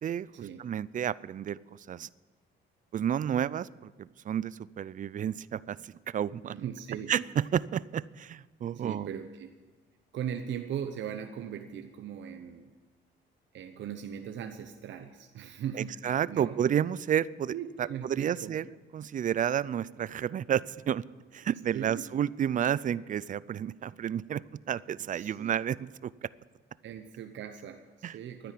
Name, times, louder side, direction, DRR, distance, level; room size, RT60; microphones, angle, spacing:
voice 1, 0.6-2.1 2.9-6.6 7.1-9.1 15.7-17.5 17.8-18.7 18.9-21.1 21.3-26.3 28.0-28.2, right 9 dB, 40° right, 21 dB, 0.4 m, -31 dB
voice 2, 6.5-7.1 8.7-9.5 10.1-12.7 13.5-16.6 17.5-18.5 21.7-22.0 25.1-25.6 26.8-28.5, right 8 dB, 70° right, 6 dB, 0.9 m, -39 dB
12.0 x 10.0 x 9.2 m, 1.3 s
cardioid pair, 90°, 20 cm